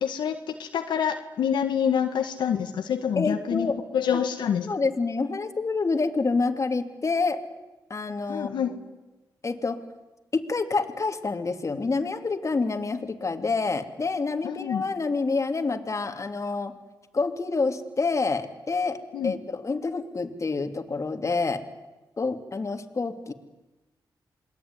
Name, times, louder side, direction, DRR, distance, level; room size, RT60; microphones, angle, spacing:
voice 1, 0.0-4.7 8.3-8.8 14.4-14.8 19.1-19.3, left 8 dB, 90° left, 5 dB, 1.7 m, -27 dB
voice 2, 3.2-3.7 4.6-7.4 7.9-8.7 9.4-9.8 10.3-16.7 17.1-21.6 22.2-23.3, left 4 dB, 40° left, 6 dB, 2.8 m, -27 dB
28.0 x 21.0 x 9.7 m, 1.1 s
cardioid pair, 60°, 8 cm